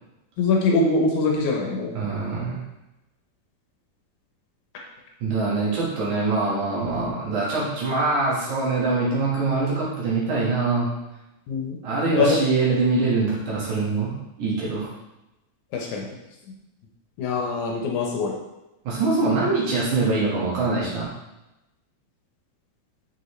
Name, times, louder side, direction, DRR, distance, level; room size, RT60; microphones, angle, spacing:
voice 1, 0.4-1.9 11.5-11.8 12.1-12.4 12.7-12.8 15.7-16.1 17.2-18.3, left 3 dB, 75° left, 0 dB, 2.1 m, -23 dB
voice 2, 1.9-2.6 5.2-10.9 11.8-14.9 18.8-21.1, right 3 dB, 65° right, -6 dB, 3.0 m, -24 dB
6.4 x 5.3 x 3.2 m, 0.96 s
omnidirectional pair, 3.8 m